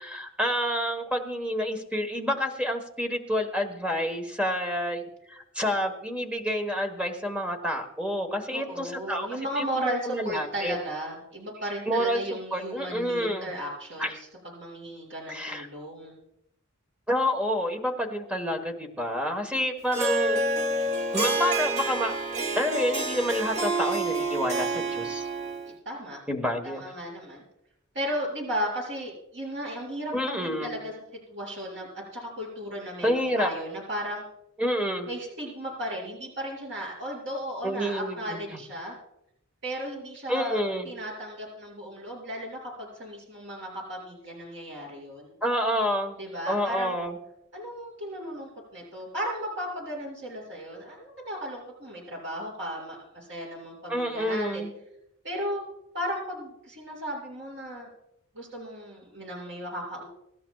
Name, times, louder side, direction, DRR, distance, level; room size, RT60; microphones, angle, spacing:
voice 1, 0.0-9.3 9.6-10.8 11.9-12.2 12.5-13.5 14.0-14.2 15.3-15.7 17.1-20.4 21.1-22.2 22.5-25.3 26.3-26.8 30.1-30.7 33.0-33.5 34.6-35.1 37.6-38.6 40.3-40.9 45.4-46.1 46.5-47.2 53.9-54.7, equal, 5° right, 4 dB, 1.3 m, -28 dB
voice 2, 8.5-16.2 25.7-26.2 26.6-27.4 27.9-30.9 31.3-34.2 35.1-38.9 39.6-45.3 46.2-46.9 47.5-54.7 55.2-55.6 55.9-57.9 58.3-60.1, equal, 55° right, -3 dB, 5.9 m, -35 dB
Harp, 19.9-25.7, right 2 dB, 35° right, 0.9 m, -28 dB
24.5 x 13.0 x 2.4 m, 0.80 s
head